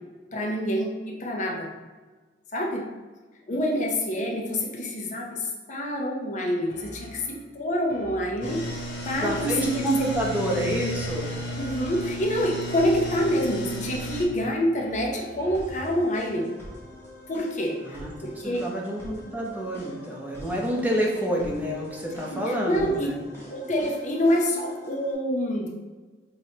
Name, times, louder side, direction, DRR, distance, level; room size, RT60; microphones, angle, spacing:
voice 1, 0.3-1.7 2.5-2.9 3.5-9.9 11.6-16.5 17.3-18.6 22.3-23.1 23.4-25.7, equal, 45° left, 0 dB, 0.6 m, -27 dB
sound 1, 6.7-7.5 7.9-8.7 9.1-12.3 12.7-13.5 13.9-16.1, equal, 65° left, 1.0 m, -46 dB
sound 2, 8.4-14.2, equal, 90° left, 1.0 m, -34 dB
voice 2, 9.2-11.3 17.8-18.1 18.4-23.2, right 1 dB, 10° right, -3 dB, 0.7 m, -28 dB
sound 3, 15.5-25.1, left 1 dB, 15° left, 1.1 m, -45 dB
4.7 x 3.1 x 2.8 m, 1.3 s
head